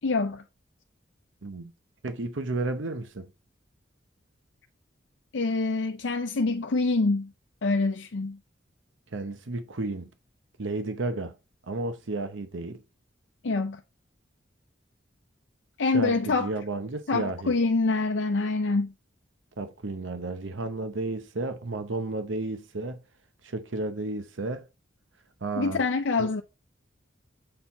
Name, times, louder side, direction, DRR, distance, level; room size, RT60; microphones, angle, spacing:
voice 1, 0.0-0.4 5.3-7.3 7.6-8.4 13.4-13.8 15.8-16.5 17.1-18.9 25.6-26.4, left 3 dB, 70° left, 0.6 m, -25 dB
voice 2, 2.0-3.3 9.1-10.1 10.6-11.3 11.6-12.8 15.9-17.5 19.6-23.0 23.4-24.7 25.4-25.8 26.2-26.3, right 2 dB, 90° right, 0.8 m, -32 dB
7.6 x 4.5 x 4.1 m
head